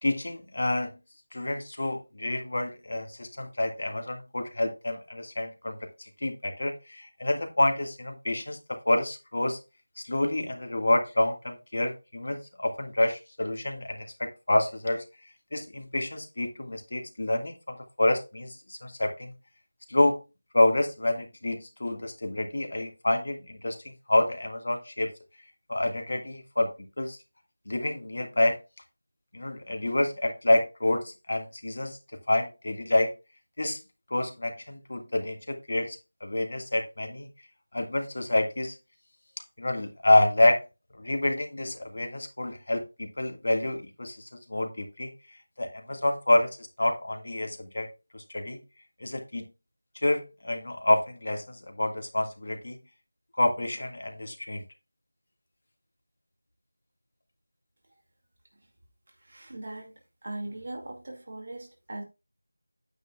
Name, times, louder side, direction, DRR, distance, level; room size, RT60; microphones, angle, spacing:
voice 1, 0.0-0.9 1.3-9.6 10.0-15.0 15.5-19.3 19.9-20.2 20.5-25.1 25.7-26.7 27.0-27.2 27.7-28.6 29.3-32.0 32.3-33.1 33.6-33.8 34.1-37.3 37.7-38.8 39.6-40.6 41.0-45.1 45.6-47.9 48.1-48.6 49.0-49.4 50.0-52.8 53.3-54.6, left 1 dB, 50° left, 1.7 m, -28 dB
voice 2, 59.3-59.9 60.2-62.0, right 1 dB, 40° right, 2.2 m, -39 dB
9.1 x 7.8 x 2.3 m
figure-of-eight pair, 175°, 0 cm